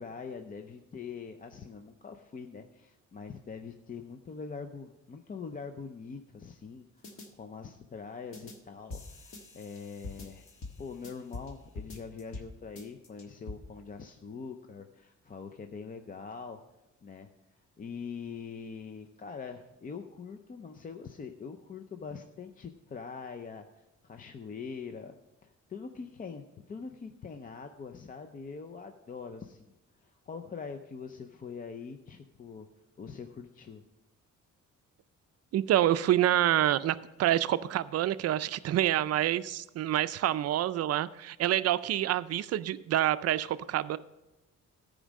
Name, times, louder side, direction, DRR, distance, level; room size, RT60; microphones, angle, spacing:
voice 1, 0.0-10.5 10.8-16.6 17.0-25.1 25.4-32.7 33.0-33.8, left 5 dB, 30° left, 6 dB, 0.5 m, -43 dB
sound 1, 7.0-7.3 8.3-8.6 8.9-11.5 11.8-12.5 12.8-13.6, left 3 dB, 45° left, 1.4 m, -44 dB
voice 2, 35.5-44.0, right 12 dB, 55° right, 14 dB, 0.4 m, -27 dB
13.5 x 5.0 x 6.3 m, 1.0 s
cardioid pair, 140°, 30 cm